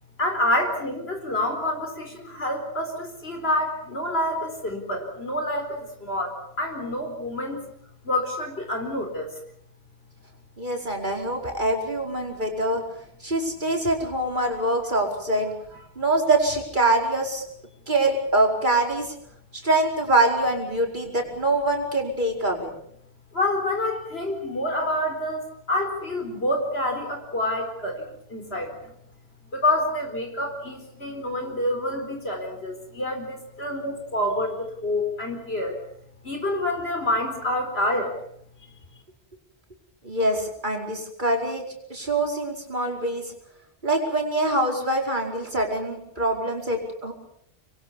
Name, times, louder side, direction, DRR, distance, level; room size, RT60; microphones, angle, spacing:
voice 1, 0.2-7.6 8.0-9.3 12.2-12.3 23.3-25.4 25.7-28.9 29.5-35.7 36.2-38.1, left 1 dB, 85° left, 4 dB, 4.7 m, -27 dB
voice 2, 10.6-12.8 13.2-15.5 16.0-17.4 17.9-19.2 19.6-22.7 40.0-41.7 41.9-43.3 43.8-47.1, right 2 dB, 50° right, 2 dB, 5.2 m, -24 dB
26.0 x 22.5 x 7.2 m, 0.69 s
omnidirectional pair, 1.0 m